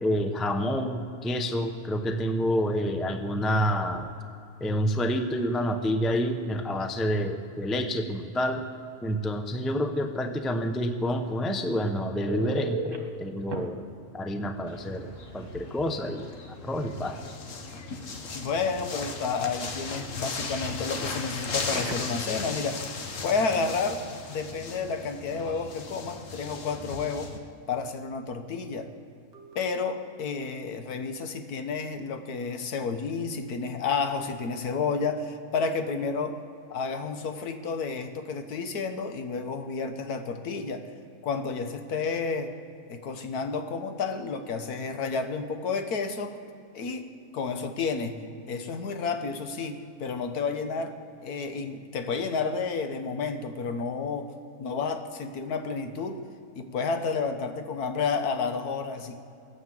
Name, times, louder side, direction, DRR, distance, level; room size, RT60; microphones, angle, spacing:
voice 1, 0.0-4.1 4.6-8.6 9.0-13.8 14.1-16.3 16.6-17.2, equal, ahead, 6 dB, 0.4 m, -28 dB
Telephone, 12.3-13.0 13.5-13.6 15.4-15.5 15.9-16.1 21.4-22.2 29.3-29.5, right 4 dB, 75° right, 1.9 m, -35 dB
sound 1, 14.7-27.4, left 4 dB, 60° left, 1.4 m, -37 dB
voice 2, 18.3-24.0 24.3-27.3 27.7-28.9 29.5-36.4 36.7-40.9 41.2-42.5 42.9-46.4 46.7-47.1 47.3-48.2 48.5-56.3 56.5-59.2, left 4 dB, 85° left, 7 dB, 1.5 m, -31 dB
17.0 x 9.6 x 7.5 m, 2.7 s
omnidirectional pair, 1.6 m